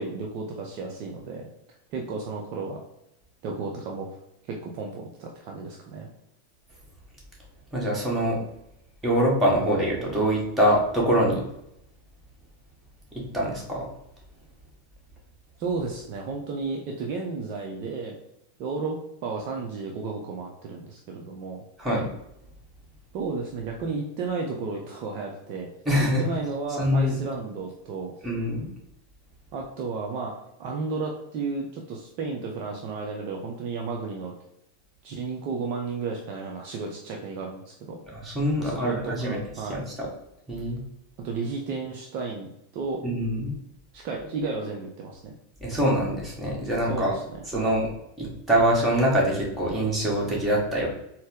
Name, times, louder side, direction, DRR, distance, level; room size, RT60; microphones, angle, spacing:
voice 1, 0.0-1.5 1.9-2.8 3.4-4.2 4.5-6.1 15.6-18.2 18.6-21.6 23.1-25.7 26.0-28.1 29.5-34.3 35.0-38.0 38.6-39.8 41.2-43.0 43.9-45.3 46.9-47.8, right 4 dB, 45° right, 0 dB, 0.5 m, -33 dB
voice 2, 7.7-8.4 9.0-11.4 13.1-13.8 21.8-22.1 25.8-26.2 26.8-27.2 28.2-28.7 38.1-39.4 39.7-40.1 40.5-40.8 43.0-43.6 45.6-47.2 47.5-47.9 48.2-50.9, equal, 10° right, -4 dB, 1.4 m, -24 dB
4.1 x 2.0 x 3.5 m, 0.81 s
figure-of-eight pair, 90°, 0 cm